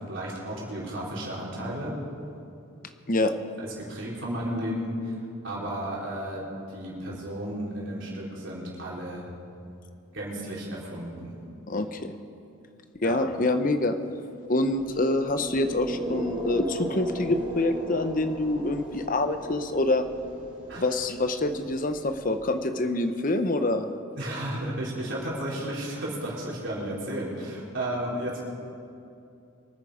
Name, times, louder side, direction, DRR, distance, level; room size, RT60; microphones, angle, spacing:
voice 1, 0.1-1.9 3.6-5.2 5.4-9.3 10.1-11.4 13.0-13.2 20.7-20.8 24.2-28.4, right 1 dB, 60° right, -5 dB, 4.1 m, -33 dB
voice 2, 11.7-12.1 13.0-14.0 14.5-20.0 20.8-23.9, left 2 dB, 40° left, 9 dB, 0.8 m, -26 dB
sound 1, 14.6-22.7, right 1 dB, 25° right, 4.3 m, -37 dB
24.0 x 9.1 x 5.1 m, 2.6 s
head